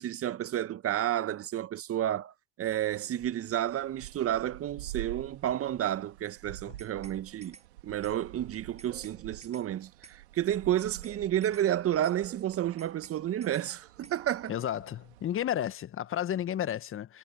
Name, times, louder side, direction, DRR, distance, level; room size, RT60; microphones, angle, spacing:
voice 1, 0.0-7.6 7.8-14.5, right 11 dB, 45° right, 2.0 m, -31 dB
sound 1, 2.7-15.4, right 17 dB, 75° right, 2.9 m, -48 dB
sound 2, 6.8-7.2 7.4-7.7 8.0-8.2 8.5-9.2 9.4-9.7 10.0-10.2 10.5-11.2 11.4-11.7 12.0-12.2 12.5-13.2 13.4-13.7 14.0-14.2, right 5 dB, 20° right, 5.8 m, -53 dB
voice 2, 14.5-17.2, left 10 dB, 40° left, 1.7 m, -32 dB
hypercardioid pair, 70°, 33 cm